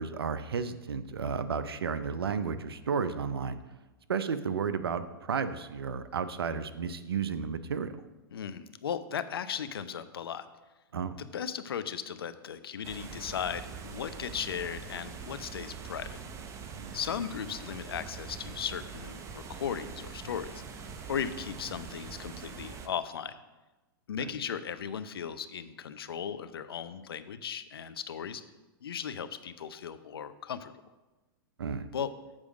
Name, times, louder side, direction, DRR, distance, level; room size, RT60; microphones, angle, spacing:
voice 1, 0.0-3.6 4.1-8.0 10.9-11.2 16.8-17.0 24.2-24.3 31.6-31.9, right 6 dB, 90° right, 12 dB, 0.6 m, -33 dB
voice 2, 8.3-10.4 11.2-16.2 16.9-20.6 21.1-23.3 24.1-28.4 28.8-30.7 31.9-32.1, left 8 dB, 80° left, 12 dB, 0.6 m, -37 dB
sound 1, 12.8-22.9, right 5 dB, 25° right, 0.8 m, -43 dB
7.5 x 4.9 x 6.3 m, 1.1 s
hypercardioid pair, 120°, 12 cm